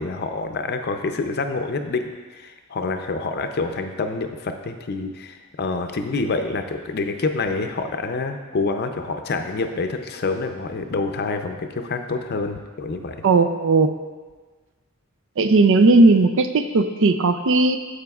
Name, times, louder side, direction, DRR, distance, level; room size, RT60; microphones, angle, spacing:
voice 1, 0.0-13.2, left 3 dB, 50° left, 6 dB, 0.6 m, -27 dB
voice 2, 13.2-13.9 15.4-17.8, right 3 dB, 65° right, 8 dB, 0.5 m, -16 dB
14.5 x 5.0 x 2.4 m, 1.4 s
head